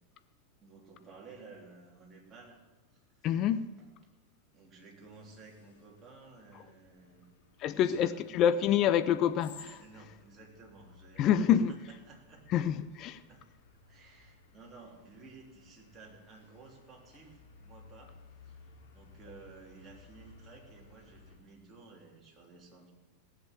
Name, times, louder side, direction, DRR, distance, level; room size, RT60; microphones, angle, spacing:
voice 1, 0.6-2.6 3.2-3.3 3.8-3.9 4.5-7.3 7.6-8.2 9.8-12.5 13.3-13.4 13.9-18.2 18.4-22.9, right 4 dB, 20° right, 3.4 m, -54 dB
voice 2, 3.2-3.7 7.6-9.8 11.2-11.7 12.5-13.2, left 9 dB, 35° left, 0.7 m, -27 dB
sound 1, 5.0-21.4, left 4 dB, 50° left, 3.4 m, -59 dB
17.5 x 7.7 x 7.7 m
figure-of-eight pair, 90°, 0 cm